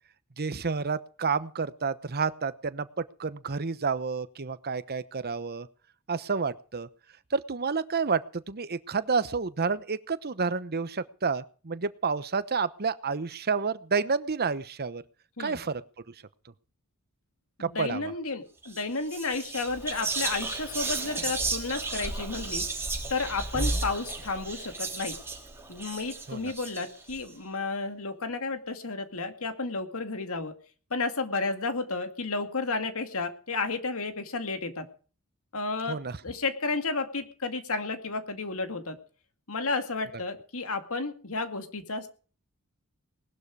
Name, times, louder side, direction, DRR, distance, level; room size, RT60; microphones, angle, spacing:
voice 1, 0.4-5.7 6.1-6.9 7.3-15.0 15.4-15.8 17.6-18.1 23.6-23.8 26.3-26.5 35.9-36.2, right 5 dB, 45° right, 14 dB, 1.0 m, -30 dB
voice 2, 17.6-22.7 23.1-25.2 25.7-30.5 30.9-34.9 35.5-36.0 36.2-39.0 39.5-42.1, left 3 dB, 70° left, 8 dB, 2.2 m, -32 dB
Whispering, 18.6-18.8 19.1-27.2, right 3 dB, 10° right, 3.3 m, -33 dB
19.5 x 12.0 x 4.8 m, 0.40 s
head